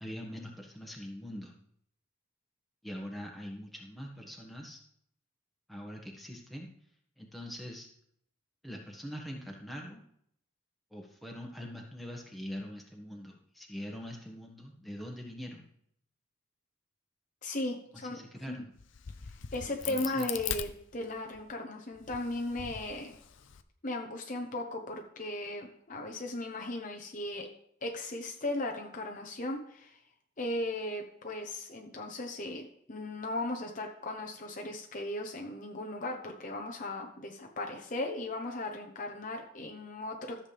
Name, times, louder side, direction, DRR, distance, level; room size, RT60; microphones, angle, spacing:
voice 1, 0.0-1.5 2.8-4.8 5.7-6.7 7.2-7.9 8.6-10.0 10.9-15.7 17.9-18.7 19.9-20.3, equal, ahead, -1 dB, 1.6 m, -43 dB
voice 2, 17.4-18.2 18.5-18.7 19.5-23.1 23.8-27.5 27.8-30.0 30.4-40.4, left 1 dB, 40° left, 1 dB, 1.0 m, -37 dB
Crack, 18.8-21.4 22.0-23.6, left 9 dB, 65° left, 0.6 m, -41 dB
14.0 x 7.3 x 3.4 m, 0.70 s
head